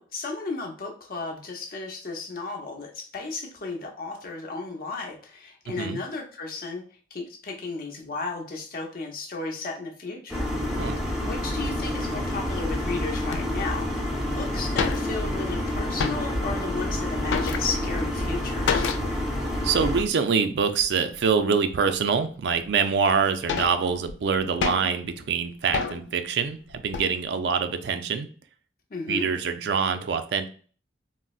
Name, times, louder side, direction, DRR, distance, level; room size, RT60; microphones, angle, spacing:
voice 1, 0.0-6.8 7.1-10.5 11.2-13.9 14.3-18.9 28.9-29.3, left 3 dB, 55° left, 2 dB, 0.6 m, -34 dB
sound 1, 10.3-20.0, left 1 dB, ahead, 0.5 m, -28 dB
sound 2, 13.3-13.4 14.1-14.2 14.4-14.5 14.7-15.5 15.8-16.6 16.9-18.0 18.7-19.2 19.5-19.6 20.0-20.2 20.8-21.3 21.9-22.0 22.6-22.7 23.1-25.1 25.7-26.2 26.7-27.1, left 6 dB, 90° left, 0.3 m, -30 dB
voice 2, 19.6-28.3 29.1-30.5, right 6 dB, 70° right, 9 dB, 0.3 m, -25 dB
3.8 x 2.0 x 2.3 m, 0.42 s
head